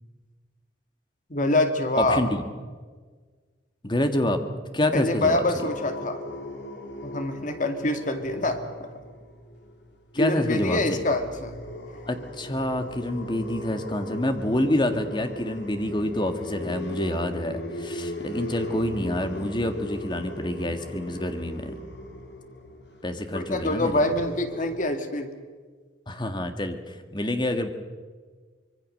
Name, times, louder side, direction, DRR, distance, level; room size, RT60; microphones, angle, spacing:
voice 1, 1.3-2.2 4.9-6.2 7.0-8.9 10.2-11.6 23.3-25.3, left 2 dB, 45° left, 7 dB, 2.0 m, -25 dB
voice 2, 2.0-2.4 3.8-4.4 4.7-5.4 10.1-11.0 12.1-21.8 23.0-24.2 26.1-27.7, left 1 dB, 25° left, 7 dB, 1.8 m, -27 dB
sound 1, 5.6-10.7 11.0-24.8, equal, 70° left, 2.7 m, -38 dB
25.0 x 23.0 x 6.6 m, 1.5 s
head